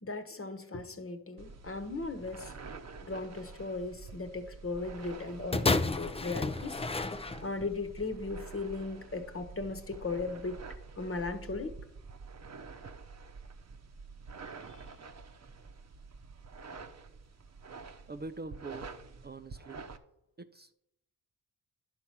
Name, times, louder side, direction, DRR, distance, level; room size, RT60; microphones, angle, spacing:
voice 1, 0.0-2.5 3.0-6.8 7.4-10.6 11.0-11.7, left 3 dB, 35° left, 1.2 m, -37 dB
sound 1, 1.4-20.0, right 4 dB, 45° right, 1.0 m, -48 dB
sound 2, 5.5-7.8 8.6-8.7, left 3 dB, 15° left, 0.6 m, -31 dB
voice 2, 18.1-18.9 19.2-19.8 20.4-20.7, right 3 dB, 25° right, 0.6 m, -44 dB
10.5 x 4.5 x 6.0 m
supercardioid pair, 45°, 39 cm